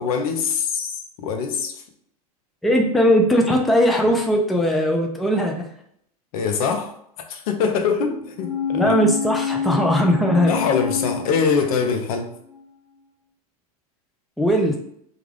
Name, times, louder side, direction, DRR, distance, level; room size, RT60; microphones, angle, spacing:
voice 1, 0.0-1.8 6.3-7.0 7.3-9.0 10.4-12.3, left 6 dB, 65° left, 5 dB, 0.6 m, -23 dB
voice 2, 2.6-5.7 8.7-10.5 14.4-14.8, equal, ahead, 1 dB, 0.3 m, -19 dB
sound 1, 8.3-12.1 12.5-12.6, left 6 dB, 40° left, 1.3 m, -27 dB
2.3 x 2.3 x 3.2 m, 0.68 s
hypercardioid pair, 105°, 20 cm